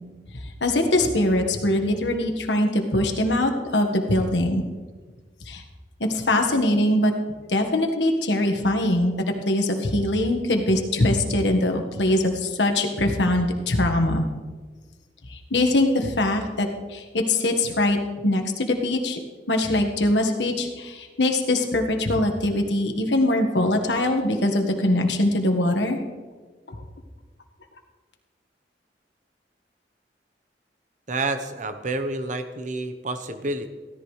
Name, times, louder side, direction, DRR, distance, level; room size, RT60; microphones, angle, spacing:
voice 1, 0.6-4.6 5.5-5.6 6.0-7.1 7.5-9.2 9.4-14.3 15.3-19.2 19.5-26.0 26.7-26.8, left 1 dB, 80° left, 4 dB, 1.5 m, -22 dB
voice 2, 31.1-33.7, right 2 dB, 45° right, 9 dB, 0.9 m, -29 dB
16.0 x 13.5 x 3.2 m, 1.4 s
head